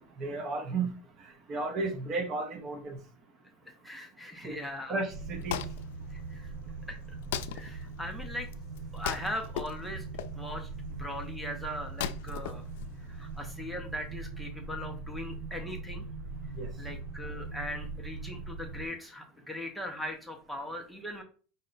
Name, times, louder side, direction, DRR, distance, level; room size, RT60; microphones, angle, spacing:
voice 1, 0.2-0.9 1.5-3.0 4.4-4.6 4.9-5.6 16.6-16.7, right 3 dB, 35° right, 6 dB, 0.8 m, -33 dB
voice 2, 3.8-5.0 6.1-6.5 6.9-7.2 7.5-8.5 8.9-10.0 10.4-10.7 11.0-12.6 13.0-16.0 16.8-21.2, left 1 dB, ahead, 1 dB, 0.6 m, -39 dB
Wood, 5.1-13.4, left 10 dB, 80° left, 0.4 m, -40 dB
sound 1, 5.1-18.9, right 3 dB, 80° right, 0.5 m, -41 dB
5.3 x 2.1 x 3.9 m, 0.39 s
supercardioid pair, 140°, 0 cm